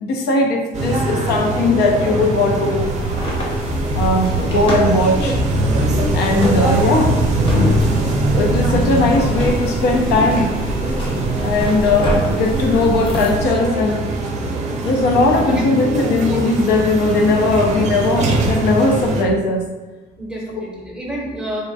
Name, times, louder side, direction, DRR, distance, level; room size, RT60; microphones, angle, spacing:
voice 1, 0.0-2.9 3.9-5.4 6.1-7.5 8.3-10.5 11.4-14.1 14.8-19.6, left 2 dB, 70° left, 2 dB, 0.5 m, -18 dB
sound 1, 0.7-19.2, right 2 dB, 45° right, 0.5 m, -21 dB
sound 2, 2.8-13.3, left 1 dB, 30° left, 0.8 m, -25 dB
voice 2, 15.5-16.1 20.2-21.6, right 1 dB, 5° right, -3 dB, 0.7 m, -28 dB
3.5 x 2.1 x 2.6 m, 1.2 s
cardioid pair, 110°, 17 cm